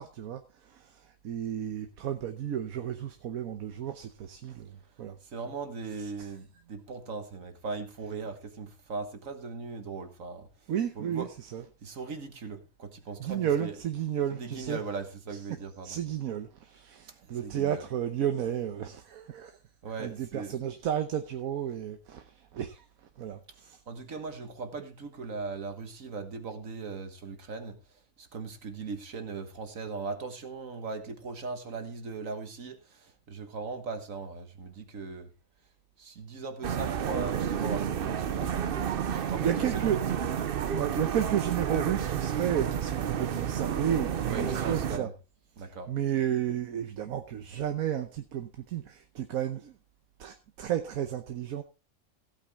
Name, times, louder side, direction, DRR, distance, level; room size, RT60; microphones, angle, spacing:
voice 1, 0.0-5.2 5.4-5.5 5.8-6.4 8.0-8.1 10.7-11.7 13.2-15.6 15.8-19.6 20.0-22.9 23.2-23.8 39.0-40.2 40.8-45.1 45.7-49.8 50.2-51.6, right 10 dB, 80° right, 1.3 m, -33 dB
voice 2, 5.2-10.5 11.0-11.3 11.8-13.7 14.3-16.0 17.2-17.8 19.8-20.6 23.9-27.8 28.2-35.3 36.0-40.0 44.2-45.1 45.6-45.9, right 4 dB, 65° right, 1.8 m, -39 dB
sound 1, 36.6-45.0, right 8 dB, 50° right, 0.7 m, -31 dB
16.0 x 8.6 x 3.5 m
omnidirectional pair, 1.5 m